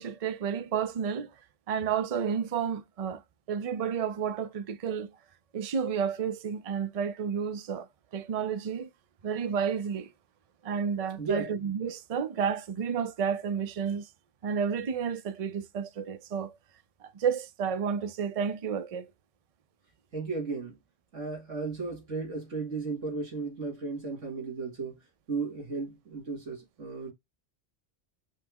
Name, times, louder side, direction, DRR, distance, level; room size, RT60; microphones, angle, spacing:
voice 1, 0.0-1.3 1.7-3.2 3.5-5.1 5.5-7.9 8.1-8.9 9.2-10.1 10.6-14.1 14.4-16.6 17.0-19.1, right 7 dB, 50° right, 0.4 m, -31 dB
voice 2, 11.2-11.5 20.1-20.8 21.1-25.0 25.3-27.1, right 4 dB, 80° right, 2.5 m, -34 dB
5.5 x 2.0 x 3.5 m
omnidirectional pair, 1.2 m